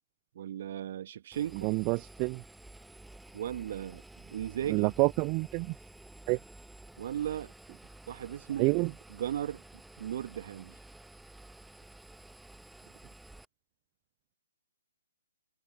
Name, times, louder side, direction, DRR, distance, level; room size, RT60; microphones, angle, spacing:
voice 1, 0.3-1.7 3.3-4.0 4.3-4.9 7.0-7.5 8.1-9.6 10.0-10.8, right 11 dB, 45° right, 1.6 m, -36 dB
Engine, 1.3-13.4, right 2 dB, 5° right, 1.2 m, -52 dB
voice 2, 1.6-2.4 4.7-5.7 6.3-6.4 8.6-8.9, right 29 dB, 25° right, 0.4 m, -28 dB
figure-of-eight pair, 130°, 0 cm